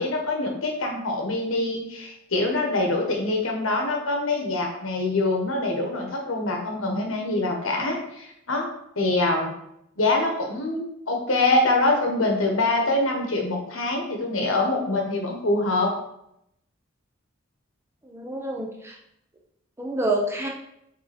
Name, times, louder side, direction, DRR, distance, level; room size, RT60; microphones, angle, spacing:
voice 1, 0.0-8.7 8.9-9.5 10.0-15.9, left 2 dB, 80° left, 1 dB, 1.4 m, -24 dB
voice 2, 18.0-19.0 19.8-20.5, right 2 dB, 10° right, 0 dB, 0.9 m, -27 dB
5.9 x 4.0 x 4.3 m, 0.78 s
head